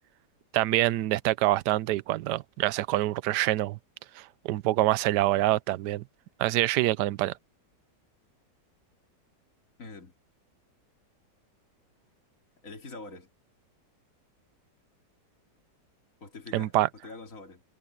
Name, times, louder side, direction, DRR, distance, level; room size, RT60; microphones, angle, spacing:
voice 1, 0.5-3.8 4.2-6.0 6.4-7.3 16.5-16.9, right 15 dB, 70° right, 1.2 m, -26 dB
voice 2, 9.8-10.1 12.6-13.3 16.2-16.8 17.0-17.6, left 3 dB, 45° left, 3.1 m, -44 dB
omnidirectional pair, 2.0 m